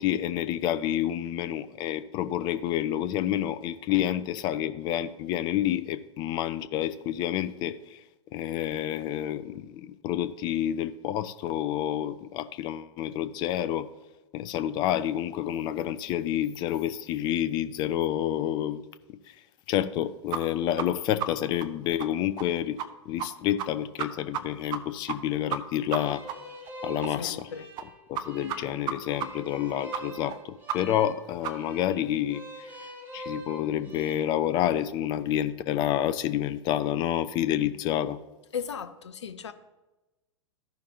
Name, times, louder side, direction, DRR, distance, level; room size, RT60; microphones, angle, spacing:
voice 1, 0.0-8.0 8.3-13.9 14.3-18.8 19.7-22.8 23.1-26.2 26.8-27.5 28.1-38.2, left 11 dB, 30° left, 13 dB, 0.4 m, -29 dB
sound 1, 20.3-20.4 20.8-20.9 21.2-21.3 21.6-21.7 22.0-22.1 22.4-22.5 22.8-22.9 23.2-23.3 23.6-23.7 24.0-24.4 24.7-24.8 25.1-25.2 25.5-25.6 25.9-26.0 26.3-26.4 26.7-26.8 27.0-27.1 27.4-27.5 27.8-27.9 28.1-28.2 28.5-28.6 28.9-29.0 29.2-29.3 29.5-29.6 29.9-30.0 30.3-30.4 30.7-30.8 31.1-31.2 31.4-31.5 31.8-31.9, right 9 dB, 30° right, 0.5 m, -31 dB
sound 2, 25.9-34.1, equal, 10° right, 1.2 m, -44 dB
voice 2, 27.1-27.7 38.5-39.5, left 7 dB, 65° left, 11 dB, 0.6 m, -36 dB
14.0 x 5.7 x 2.8 m, 1.1 s
figure-of-eight pair, 100°, 16 cm